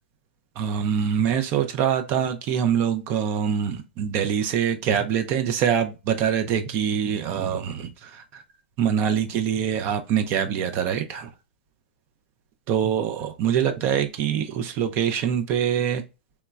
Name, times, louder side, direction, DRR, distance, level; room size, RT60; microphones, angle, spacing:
voice 1, 0.6-8.4 8.8-11.3 12.7-16.0, right 8 dB, 40° right, 0.5 m, -24 dB
3.0 x 2.2 x 2.3 m
hypercardioid pair, 120°, 6 cm